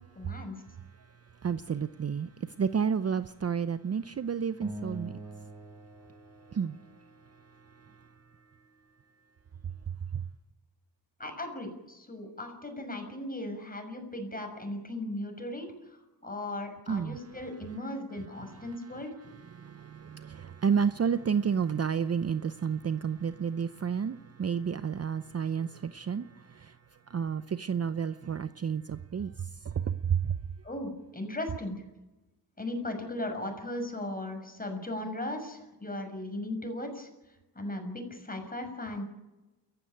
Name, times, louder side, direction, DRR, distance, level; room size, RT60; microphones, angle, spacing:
voice 1, 0.1-0.6 11.2-19.1 30.6-31.8 32.6-37.1 37.5-39.0, left 1 dB, 20° left, 6.5 m, -37 dB
voice 2, 1.4-2.3 2.6-5.1 6.5-6.8 16.9-17.2 19.5-26.3 27.1-29.3 29.9-30.2, right 7 dB, 35° right, 0.7 m, -30 dB
sound 1, 4.6-7.2, right 2 dB, 15° right, 4.1 m, -44 dB
28.5 x 15.0 x 9.0 m
cardioid pair, 90°, 42 cm